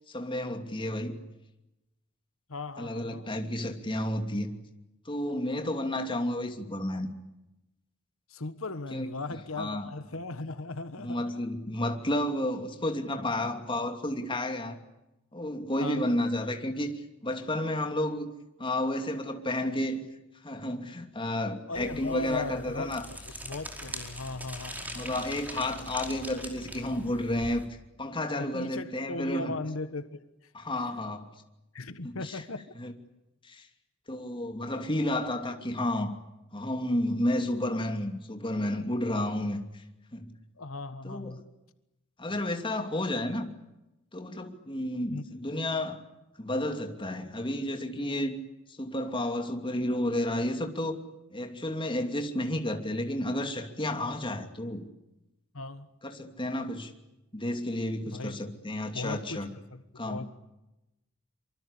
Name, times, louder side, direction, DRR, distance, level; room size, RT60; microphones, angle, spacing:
voice 1, 0.1-1.2 2.8-4.5 5.0-7.1 8.9-9.2 9.6-9.8 11.0-14.8 15.3-17.0 17.2-18.3 18.6-20.1 20.4-23.1 24.9-27.7 28.0-29.5 30.5-31.3 32.0-32.4 32.8-32.9 33.4-33.7 34.1-36.1 36.5-39.8 40.1-40.3 41.0-41.4 42.2-43.5 44.1-46.0 46.4-48.3 48.7-51.0 51.3-54.9 56.0-56.9 57.3-59.5 60.0-60.3, left 1 dB, 25° left, 2.8 m, -31 dB
voice 2, 2.5-3.4 8.3-11.5 15.8-16.0 21.7-22.9 23.2-25.2 28.3-30.5 31.7-32.7 40.6-41.4 42.3-42.4 45.1-45.2 55.5-55.9 58.0-58.5 58.9-60.3, left 3 dB, 85° left, 1.4 m, -38 dB
sound 1, 21.7-27.7, equal, 10° right, 4.9 m, -42 dB
25.5 x 24.5 x 8.4 m
head